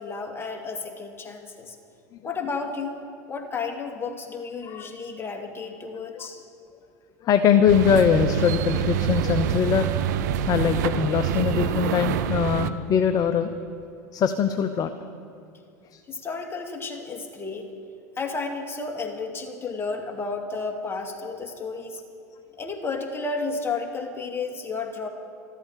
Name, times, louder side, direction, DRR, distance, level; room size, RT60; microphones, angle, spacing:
voice 1, 0.0-1.8 2.2-3.0 3.3-6.4 16.1-17.7 18.2-22.0 22.6-25.1, left 4 dB, 25° left, 4 dB, 2.2 m, -32 dB
voice 2, 7.2-9.9 10.5-13.5 14.1-14.9 15.9-16.0, left 7 dB, 40° left, 9 dB, 0.8 m, -22 dB
sound 1, 7.7-12.7, right 9 dB, 75° right, 0.8 m, -26 dB
13.5 x 13.0 x 7.4 m, 2.5 s
hypercardioid pair, 90°, 10 cm